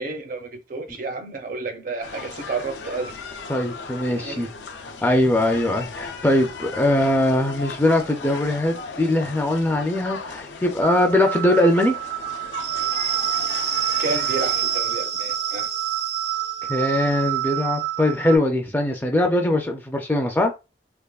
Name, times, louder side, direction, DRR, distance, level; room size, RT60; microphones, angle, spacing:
voice 1, 0.0-3.2 4.1-4.5 13.6-13.7 14.0-15.7, right 3 dB, 50° right, 0.6 m, -31 dB
sound 1, 2.0-14.8, left 4 dB, 80° left, 0.5 m, -37 dB
voice 2, 3.5-4.5 5.0-12.0 16.7-20.5, left 1 dB, 10° left, 0.3 m, -21 dB
sound 2, 10.8-18.4, right 11 dB, 85° right, 0.9 m, -26 dB
3.4 x 2.1 x 2.3 m
head